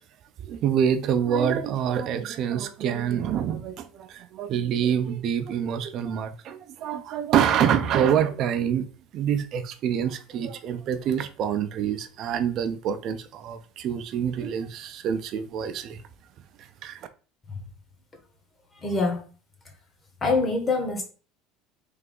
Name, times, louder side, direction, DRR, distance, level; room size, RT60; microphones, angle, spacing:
voice 1, 0.4-8.9 9.1-16.0 16.6-17.1, right 8 dB, 50° right, 0.5 m, -26 dB
voice 2, 18.8-19.2 20.2-21.0, left 3 dB, 25° left, 1.2 m, -24 dB
3.4 x 2.7 x 3.8 m
supercardioid pair, 115°, 0 cm